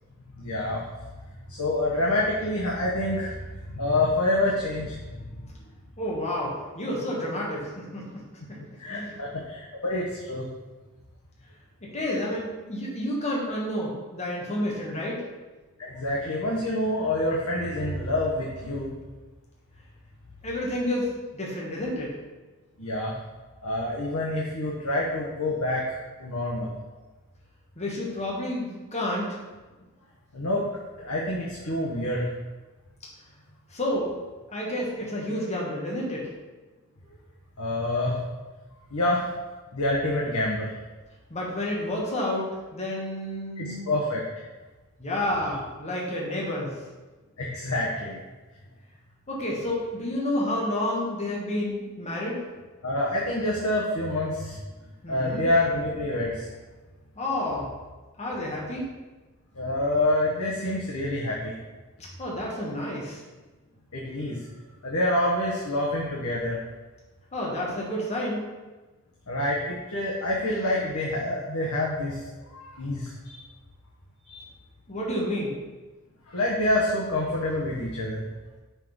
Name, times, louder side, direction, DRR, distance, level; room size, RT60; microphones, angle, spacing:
voice 1, 0.4-0.8 1.5-3.4 3.7-5.2 8.8-10.5 15.8-18.9 22.8-23.1 23.6-25.8 26.2-26.7 30.3-30.6 31.0-32.2 37.6-38.2 38.9-39.2 39.7-40.7 43.6-44.2 47.4-48.2 52.8-54.6 55.1-56.5 59.5-61.5 63.9-64.4 64.8-66.6 69.3-73.4 74.2-74.4 76.3-78.2, left 1 dB, 80° left, -4 dB, 1.1 m, -27 dB
voice 2, 6.0-8.0 8.5-8.6 8.9-9.2 11.8-15.2 20.4-22.1 27.8-29.4 33.7-34.1 34.5-36.3 41.3-43.9 45.0-46.7 49.3-52.4 55.0-55.4 57.2-57.7 58.2-58.9 62.2-63.2 67.3-68.5 74.9-75.5, left 1 dB, 30° left, -4 dB, 1.3 m, -30 dB
5.8 x 3.7 x 5.9 m, 1.2 s
head